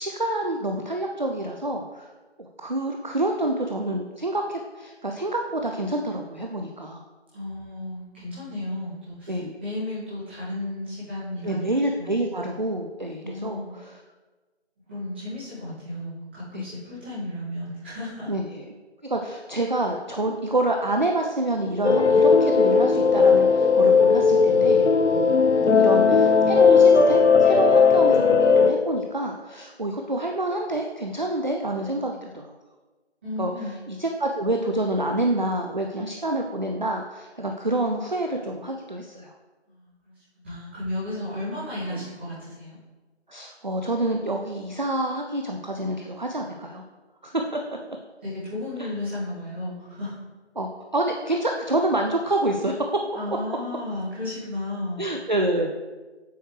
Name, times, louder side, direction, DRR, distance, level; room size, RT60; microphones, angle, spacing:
voice 1, 0.0-2.1 2.4-7.0 9.3-9.6 11.4-14.0 16.5-16.6 18.3-18.6 19.0-24.8 25.8-32.5 33.4-39.3 41.9-42.1 43.3-46.8 47.2-47.6 47.9-48.0 48.8-48.9 50.6-52.9 55.0-55.7, right 1 dB, 45° right, 2 dB, 0.5 m, -27 dB
voice 2, 7.3-11.7 12.0-12.2 13.2-13.7 14.9-18.3 25.5-26.2 33.2-33.7 39.7-42.8 48.2-50.1 53.1-55.0, left 1 dB, 10° right, -14 dB, 2.0 m, -33 dB
sound 1, 21.8-28.7, left 5 dB, 80° left, 0.9 m, -17 dB
7.8 x 6.2 x 3.2 m, 1.3 s
figure-of-eight pair, 170°, 34 cm